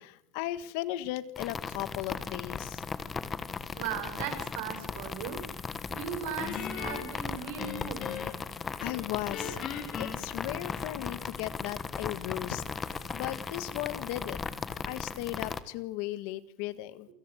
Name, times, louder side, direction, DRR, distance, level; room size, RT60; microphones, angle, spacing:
voice 1, 0.0-2.8 8.8-14.4 14.8-17.1, left 15 dB, 65° left, 14 dB, 1.5 m, -37 dB
sound 1, 1.4-15.6, left 5 dB, 15° left, 1.3 m, -37 dB
voice 2, 3.7-5.4 5.9-8.0, right 8 dB, 65° right, 8 dB, 6.8 m, -37 dB
Guitar, 6.4-8.5 8.9-11.2, left 8 dB, 40° left, 4.0 m, -40 dB
27.5 x 17.5 x 8.0 m, 0.71 s
cardioid pair, 175°, 0 cm